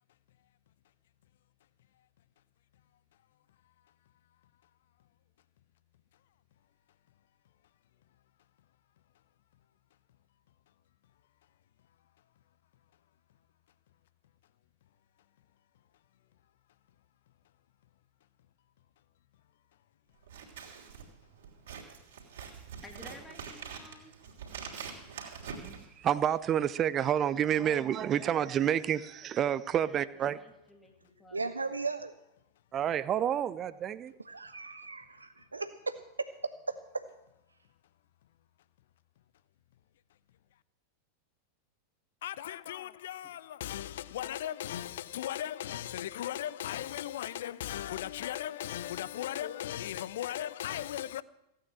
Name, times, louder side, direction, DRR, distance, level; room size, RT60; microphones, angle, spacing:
Scissors, 20.2-26.5, right 6 dB, 60° right, 3.3 m, -45 dB
voice 1, 22.8-24.2 29.2-29.3 29.8-31.9, left 2 dB, 5° left, 2.1 m, -54 dB
voice 2, 25.6-30.4 32.7-34.1, right 10 dB, 30° right, 0.5 m, -29 dB
voice 3, 31.3-32.1 34.2-36.3 36.7-37.1, right 3 dB, 80° right, 0.7 m, -36 dB
voice 4, 42.2-51.2, left 12 dB, 60° left, 0.6 m, -37 dB
16.0 x 9.4 x 7.5 m
figure-of-eight pair, 90°, 0 cm